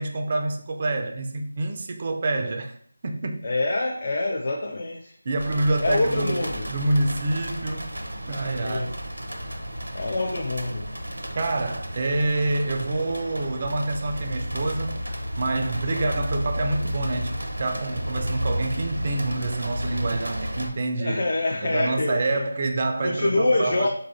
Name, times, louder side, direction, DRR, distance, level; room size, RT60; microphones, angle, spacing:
voice 1, 0.0-2.8 3.0-3.4 5.2-8.0 8.3-9.0 11.3-15.0 15.4-21.2 21.6-23.9, right 2 dB, 35° right, 0.3 m, -27 dB
voice 2, 3.4-5.1 5.8-6.7 8.6-8.9 9.9-10.9 15.9-16.1 21.0-22.4 23.0-23.9, left 2 dB, 45° left, 0.4 m, -26 dB
sound 1, 5.4-20.7, equal, 90° right, 0.7 m, -32 dB
3.8 x 2.3 x 2.4 m
figure-of-eight pair, 165°, 0 cm